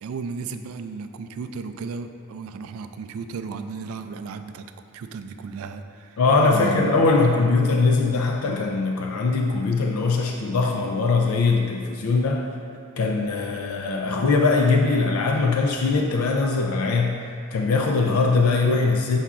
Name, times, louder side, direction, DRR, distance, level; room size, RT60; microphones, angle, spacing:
voice 1, 0.0-4.6 4.9-6.2 6.5-7.2, right 5 dB, 75° right, 8 dB, 0.3 m, -34 dB
voice 2, 6.2-12.5 13.0-17.2 17.5-19.2, left 3 dB, 85° left, 2 dB, 0.4 m, -21 dB
7.1 x 5.6 x 2.4 m, 2.3 s
head